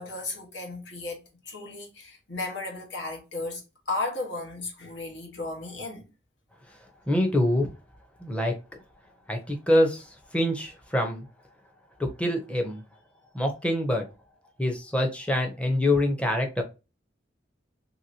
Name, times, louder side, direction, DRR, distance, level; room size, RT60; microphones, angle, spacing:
voice 1, 0.0-6.0, left 2 dB, 75° left, 1.2 m, -35 dB
voice 2, 7.1-7.7 8.2-8.5 9.3-11.2 12.0-12.8 13.3-14.0 14.6-16.6, left 1 dB, 5° left, 0.6 m, -25 dB
3.0 x 2.8 x 2.7 m
head